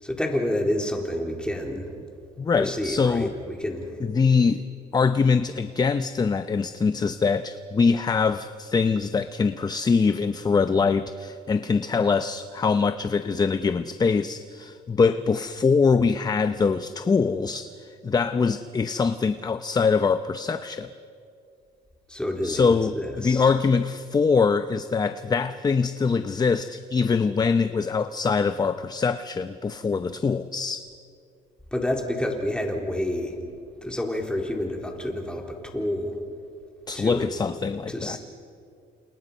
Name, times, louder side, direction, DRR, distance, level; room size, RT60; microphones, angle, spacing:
voice 1, 0.0-1.9 2.5-3.9 22.1-23.5 31.7-33.3 33.8-36.2 36.9-37.3 37.9-38.2, left 1 dB, 5° left, 1 dB, 3.9 m, -29 dB
voice 2, 2.4-3.3 4.1-4.6 4.9-20.9 22.4-30.9 36.9-38.2, left 5 dB, 25° left, 11 dB, 0.7 m, -23 dB
30.0 x 28.0 x 5.6 m, 2.4 s
cardioid pair, 110°, 17 cm